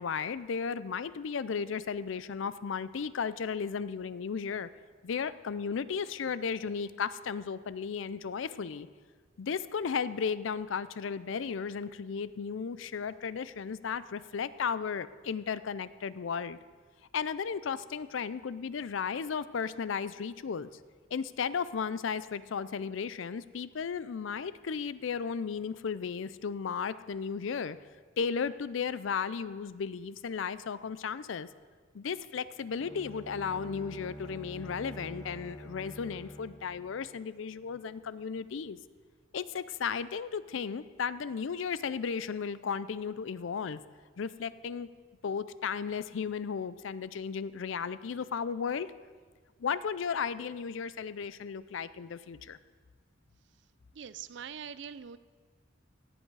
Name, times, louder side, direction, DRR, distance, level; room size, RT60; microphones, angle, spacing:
voice 1, 0.0-4.7 5.0-8.9 9.4-16.6 17.1-20.7 21.1-27.8 28.2-31.5 31.9-38.8 39.3-43.8 44.2-44.9 45.2-48.9 49.6-52.6, left 6 dB, 70° left, 16 dB, 0.4 m, -35 dB
Bowed string instrument, 32.8-37.7, equal, 20° left, 1.0 m, -46 dB
voice 2, 53.9-55.2, right 7 dB, 60° right, 15 dB, 0.4 m, -43 dB
17.0 x 8.1 x 4.7 m, 1.5 s
head